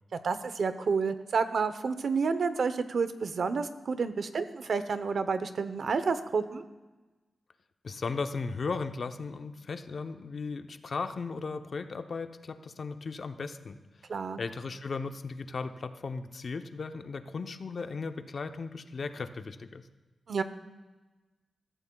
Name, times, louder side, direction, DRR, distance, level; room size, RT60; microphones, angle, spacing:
voice 1, 0.1-6.6 14.1-14.4 20.3-20.4, right 5 dB, 65° right, 11 dB, 0.8 m, -30 dB
voice 2, 7.8-13.8 14.4-19.8, left 4 dB, 50° left, 8 dB, 0.7 m, -36 dB
22.0 x 13.5 x 2.3 m, 1.2 s
wide cardioid pair, 120°, 0 cm